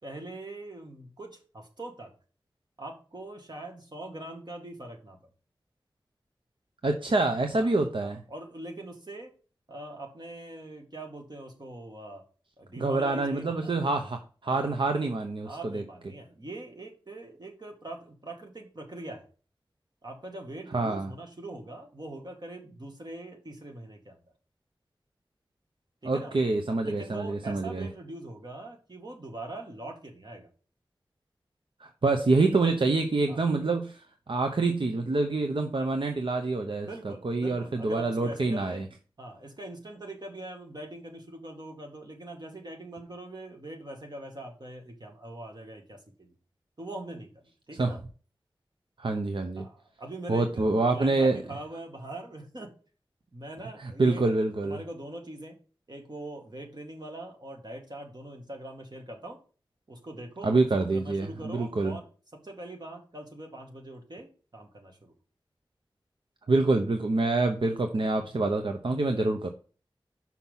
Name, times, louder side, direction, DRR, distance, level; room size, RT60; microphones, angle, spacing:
voice 1, 0.0-2.1 2.8-5.3 7.6-7.7 8.0-9.3 9.7-12.2 12.6-13.8 14.5-14.8 15.5-19.3 20.0-24.2 26.0-26.3 26.8-30.5 33.3-33.4 36.8-38.8 39.2-46.3 46.8-47.3 47.7-48.0 49.6-52.7 53.3-54.3 54.6-55.6 55.9-59.4 59.9-65.1 69.2-69.3, right 1 dB, 50° right, 2 dB, 2.0 m, -42 dB
voice 2, 6.8-8.2 12.8-15.8 20.7-21.1 26.0-27.9 31.8-38.8 47.8-47.9 49.0-49.6 50.3-51.4 53.8-54.8 60.4-61.9 66.5-69.5, right 3 dB, 70° right, 5 dB, 0.8 m, -26 dB
5.9 x 5.8 x 5.5 m, 0.39 s
wide cardioid pair, 55°, 9 cm